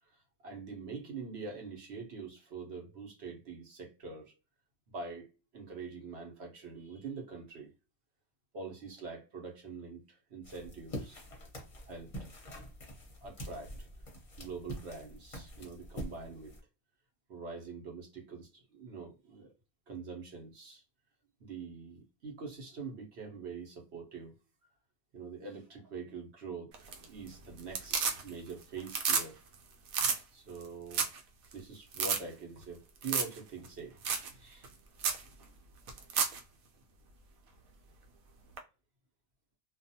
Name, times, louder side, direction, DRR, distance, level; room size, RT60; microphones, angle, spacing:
voice 1, 0.4-4.3 4.9-7.7 8.5-11.2 11.9-12.1 13.2-13.9 14.4-16.5 17.3-19.5 19.9-20.8 21.4-24.3 25.1-29.4 30.3-31.0 31.5-34.0 34.4-34.7, right 4 dB, 55° right, 1.1 m, -44 dB
sound 1, 10.4-16.6, equal, 30° left, 0.7 m, -45 dB
sound 2, 26.7-27.3 27.6-28.5 28.8-29.3 29.5-29.6 29.9-30.2 30.6-30.7 30.9-31.2 31.5-31.6 31.9-32.2 33.0-33.4 33.6-33.7 34.0-34.3 34.6-34.7 35.0-35.2 35.9-36.4 38.6-38.7, right 6 dB, 80° right, 1.1 m, -31 dB
2.5 x 2.3 x 2.7 m
omnidirectional pair, 1.5 m